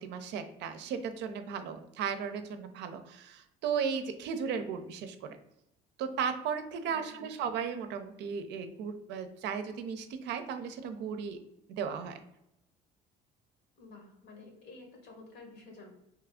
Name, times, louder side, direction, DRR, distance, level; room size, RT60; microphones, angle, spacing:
voice 1, 0.0-5.4 6.0-11.4 11.7-12.2, right 6 dB, 75° right, 9 dB, 0.5 m, -35 dB
voice 2, 6.8-7.2 13.8-15.9, left 3 dB, 70° left, 2 dB, 1.2 m, -51 dB
3.0 x 2.4 x 3.5 m, 0.87 s
cardioid pair, 95°, 18 cm